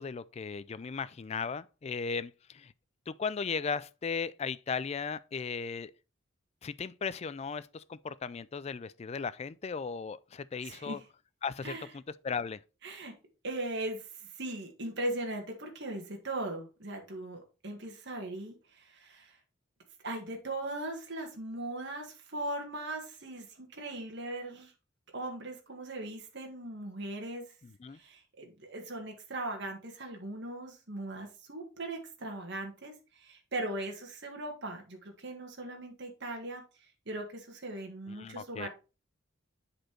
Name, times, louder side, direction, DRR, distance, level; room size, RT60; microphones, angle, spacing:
voice 1, 0.0-2.7 3.1-5.9 6.6-11.0 11.4-12.6 27.6-28.0 38.1-38.7, left 5 dB, 30° left, 0.3 m, -36 dB
voice 2, 10.6-11.0 11.6-11.9 12.8-13.1 13.4-14.1 14.4-19.4 20.0-24.7 25.1-27.4 27.9-38.7, right 2 dB, 60° right, 1.7 m, -39 dB
7.8 x 4.4 x 4.5 m
head